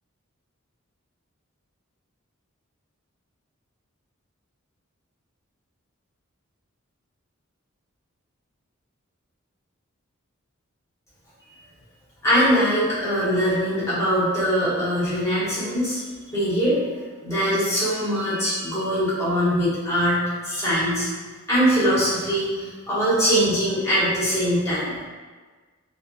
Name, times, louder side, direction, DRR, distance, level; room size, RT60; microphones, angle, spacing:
voice 1, 12.2-16.0 16.3-21.1 21.5-24.9, equal, 15° left, -11 dB, 1.5 m, -22 dB
3.4 x 2.5 x 2.6 m, 1.4 s
head